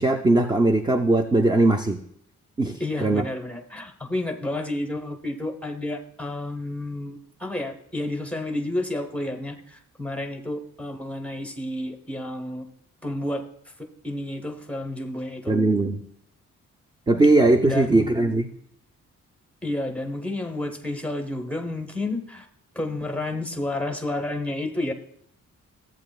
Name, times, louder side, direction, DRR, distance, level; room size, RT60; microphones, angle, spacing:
voice 1, 0.0-2.0 2.6-3.2 15.5-16.0 17.1-18.5, right 2 dB, 15° right, 6 dB, 0.4 m, -20 dB
voice 2, 2.8-12.7 13.0-13.4 13.8-15.6 17.6-18.2 19.6-22.5 22.7-24.9, left 1 dB, 5° left, 4 dB, 0.9 m, -30 dB
14.0 x 8.1 x 2.3 m, 0.70 s
wide cardioid pair, 145°, 30 cm